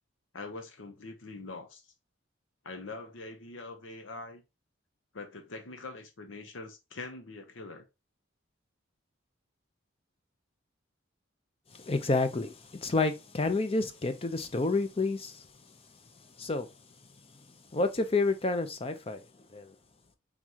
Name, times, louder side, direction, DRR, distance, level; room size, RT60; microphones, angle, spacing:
voice 1, 0.3-1.8 2.6-4.4 5.1-7.8, left 3 dB, 75° left, 0.8 m, -43 dB
voice 2, 11.7-15.4 16.4-16.7 17.7-19.2 19.5-19.7, left 3 dB, 30° left, 0.6 m, -29 dB
4.0 x 3.6 x 2.9 m
head